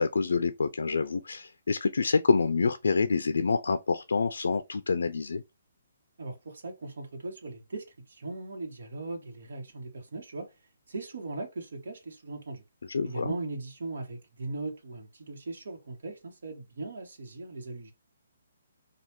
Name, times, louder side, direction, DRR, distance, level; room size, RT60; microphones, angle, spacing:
voice 1, 0.0-5.4 12.8-13.3, left 4 dB, 85° left, 0.3 m, -27 dB
voice 2, 6.2-10.5 10.9-12.6 13.0-17.9, right 2 dB, 70° right, 1.1 m, -39 dB
3.1 x 2.3 x 2.9 m
hypercardioid pair, 165°, 0 cm